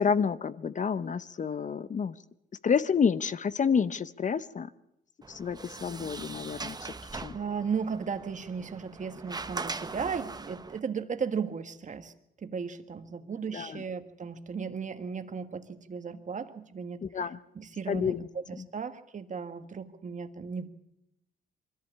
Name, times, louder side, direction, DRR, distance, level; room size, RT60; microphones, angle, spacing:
voice 1, 0.0-2.2 2.6-4.7 5.3-6.8 7.1-7.4 13.5-13.8 17.0-17.4 17.9-18.3 18.6-18.7, left 6 dB, 40° left, 15 dB, 0.8 m, -29 dB
Sliding door, 5.2-10.8, right 3 dB, 20° right, 0.9 m, -41 dB
voice 2, 7.3-12.1 12.4-17.0 17.5-18.2 18.5-20.7, right 6 dB, 40° right, 8 dB, 1.6 m, -35 dB
22.5 x 14.0 x 8.4 m, 0.84 s
cardioid pair, 90°, 20 cm